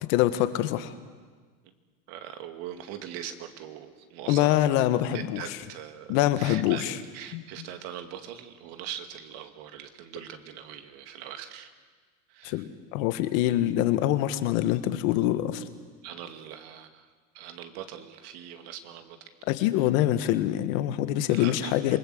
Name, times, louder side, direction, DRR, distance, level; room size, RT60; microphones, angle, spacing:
voice 1, 0.1-0.9 4.3-5.4 6.1-6.9 7.3-7.4 12.4-15.6 19.5-22.0, left 13 dB, 80° left, 11 dB, 1.7 m, -25 dB
voice 2, 2.1-4.7 5.1-11.7 12.3-12.7 16.0-17.1 17.3-19.2 21.3-22.0, right 10 dB, 70° right, 7 dB, 2.5 m, -41 dB
27.5 x 20.5 x 8.0 m, 1.5 s
supercardioid pair, 120°, 40 cm